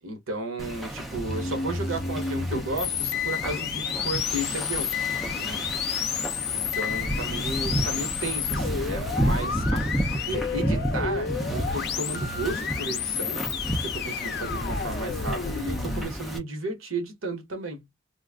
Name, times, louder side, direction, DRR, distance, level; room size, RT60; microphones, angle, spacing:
voice 1, 0.0-5.0 5.4-5.6 6.5-9.9 10.2-13.4 13.8-17.8, right 2 dB, 80° right, 1.1 m, -34 dB
Wind / Ocean, 0.6-16.4, right 1 dB, ahead, 0.5 m, -32 dB
sound 1, 1.3-16.1, left 6 dB, 50° left, 0.5 m, -31 dB
2.4 x 2.3 x 3.5 m
head